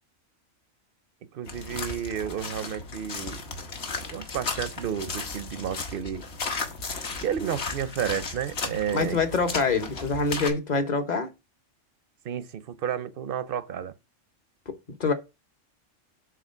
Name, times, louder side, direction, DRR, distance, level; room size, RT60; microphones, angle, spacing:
voice 1, 1.3-3.4 4.0-6.2 7.2-9.2 12.2-13.9, right 8 dB, 55° right, 0.7 m, -31 dB
sound 1, 1.4-10.5, left 4 dB, 55° left, 1.2 m, -35 dB
voice 2, 8.9-11.3 14.7-14.8 15.0-15.1, left 4 dB, 40° left, 1.0 m, -25 dB
7.5 x 3.0 x 5.4 m
omnidirectional pair, 1.3 m